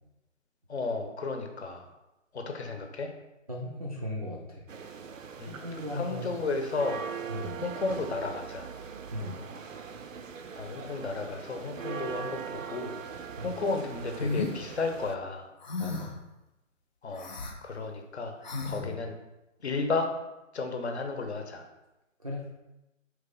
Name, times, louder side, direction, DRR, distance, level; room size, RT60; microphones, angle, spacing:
voice 1, 0.7-1.9 2.3-3.1 5.4-5.5 5.9-7.0 7.6-8.7 10.6-15.5 17.0-17.3 17.6-18.4 18.6-19.2 19.6-20.1 20.5-21.6, left 3 dB, 55° left, 5 dB, 0.9 m, -33 dB
voice 2, 3.5-4.7 5.5-6.5 7.3-7.6 9.1-9.4 13.4-13.5 15.8-16.1 18.7-19.0 22.2-22.5, left 1 dB, 30° right, -4 dB, 0.4 m, -37 dB
sound 1, 4.7-15.2, right 6 dB, 80° right, 0.6 m, -41 dB
sound 2, 14.2-14.6 15.6-16.2 17.1-17.5 18.4-18.8, left 3 dB, 35° left, 0.5 m, -33 dB
4.3 x 3.2 x 3.8 m, 0.95 s
figure-of-eight pair, 140°, 39 cm